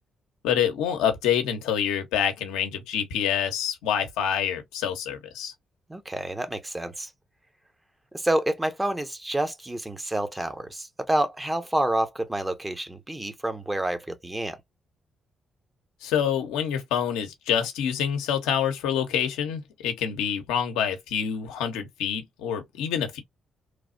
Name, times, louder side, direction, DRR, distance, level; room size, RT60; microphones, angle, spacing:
voice 1, 0.4-5.5 16.0-23.2, left 8 dB, 90° left, 0.7 m, -27 dB
voice 2, 5.9-7.1 8.1-14.6, right 1 dB, 15° right, 0.8 m, -28 dB
3.2 x 2.0 x 2.5 m
supercardioid pair, 60°, 0 cm